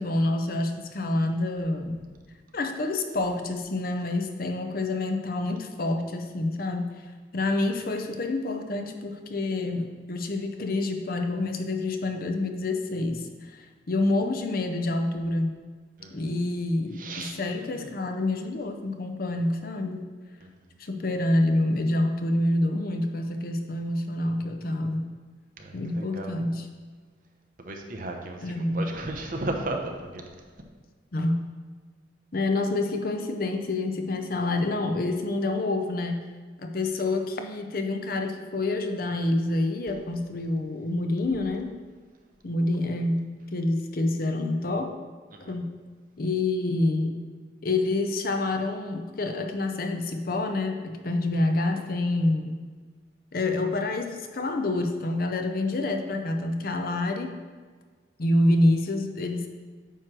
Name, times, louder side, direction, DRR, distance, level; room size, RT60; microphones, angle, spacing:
voice 1, 0.0-2.0 2.5-6.9 7.3-15.5 16.1-20.0 20.8-25.1 25.7-26.7 28.4-28.9 31.1-31.5 32.3-36.2 36.6-41.7 42.4-44.9 45.4-45.7 46.2-47.2 47.6-52.6 53.3-57.3 58.2-59.5, left 2 dB, 50° left, 5 dB, 0.6 m, -27 dB
voice 2, 17.0-17.4 17.7-17.9 25.6-26.3 27.6-30.2 45.3-45.5, right 2 dB, 45° right, 2 dB, 0.8 m, -35 dB
9.1 x 3.2 x 6.0 m, 1.5 s
head